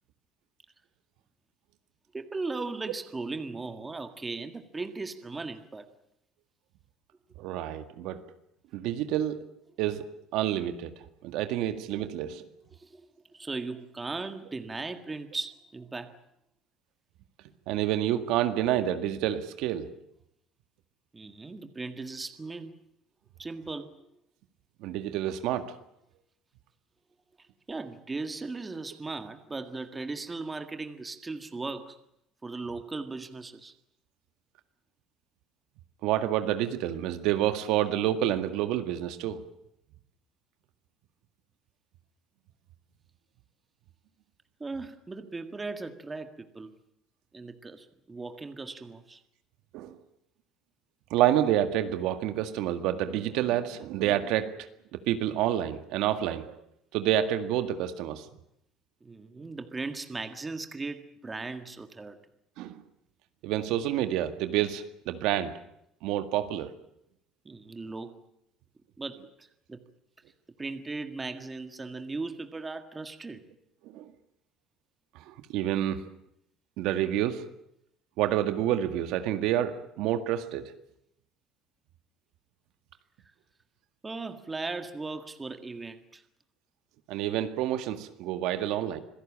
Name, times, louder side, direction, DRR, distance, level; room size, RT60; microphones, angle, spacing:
voice 1, 2.1-5.9 12.7-16.1 21.1-22.8 23.4-23.9 27.4-32.0 32.4-33.7 44.6-46.7 47.3-49.2 59.0-62.2 67.4-68.2 69.0-69.9 70.6-73.5 84.0-86.2, right 3 dB, 15° right, 8 dB, 1.8 m, -38 dB
voice 2, 7.4-8.2 8.7-9.4 9.8-10.9 11.2-12.4 17.7-19.9 24.8-25.7 36.0-39.4 49.7-50.0 51.1-54.5 54.9-56.6 56.9-58.2 62.6-62.8 63.4-65.5 66.0-66.7 73.9-74.1 75.3-76.0 76.8-77.4 78.2-80.7 87.1-89.0, right 12 dB, 75° right, 8 dB, 1.9 m, -28 dB
26.5 x 17.0 x 8.8 m, 0.78 s
cardioid pair, 130°, 0 cm